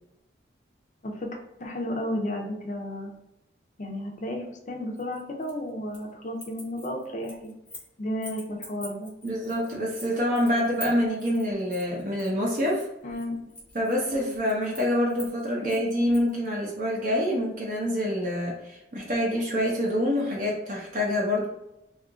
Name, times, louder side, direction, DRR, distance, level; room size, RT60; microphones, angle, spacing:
voice 1, 1.0-3.1 3.8-7.5 8.0-9.1 13.0-13.5, left 1 dB, 40° left, 2 dB, 0.5 m, -33 dB
sound 1, 5.0-6.1 6.4-7.9 8.2-16.3, left 1 dB, 5° left, 0.7 m, -45 dB
voice 2, 9.2-12.9 13.7-21.4, equal, 45° right, -3 dB, 0.6 m, -26 dB
2.7 x 2.4 x 3.7 m, 0.85 s
head